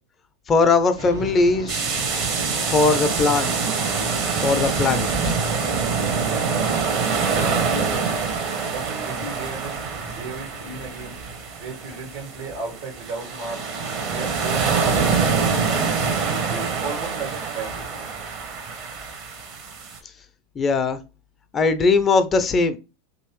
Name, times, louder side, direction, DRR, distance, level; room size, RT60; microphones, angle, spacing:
voice 1, 0.5-1.8 2.7-3.5 4.4-5.4 20.6-21.0 21.5-22.8, left 4 dB, 25° left, 9 dB, 0.5 m, -19 dB
sound 1, 1.0-11.4, right 2 dB, 90° right, 1.2 m, -39 dB
sound 2, 1.7-20.0, right 5 dB, 45° right, 1.1 m, -25 dB
voice 2, 7.2-8.1 8.7-9.8 10.2-11.2 11.6-13.6 14.1-15.9 16.3-18.0, right 3 dB, 70° right, 2 dB, 1.3 m, -35 dB
3.0 x 2.8 x 3.0 m, 0.29 s
figure-of-eight pair, 85°, 0 cm